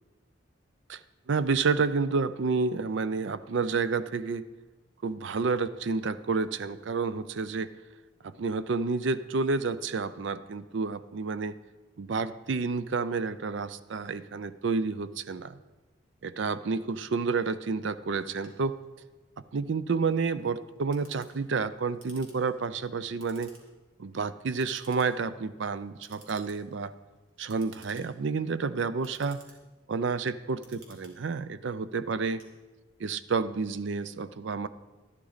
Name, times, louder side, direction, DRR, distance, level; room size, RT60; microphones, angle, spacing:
voice 1, 1.3-4.4 5.0-7.7 8.2-11.6 12.0-15.6 16.2-18.8 19.5-23.5 24.0-26.9 27.4-29.4 29.9-32.4 33.0-34.7, right 4 dB, 65° right, 14 dB, 0.5 m, -30 dB
Clock, 18.2-33.1, right 2 dB, 85° right, 2.4 m, -58 dB
12.5 x 11.5 x 4.0 m, 1.2 s
head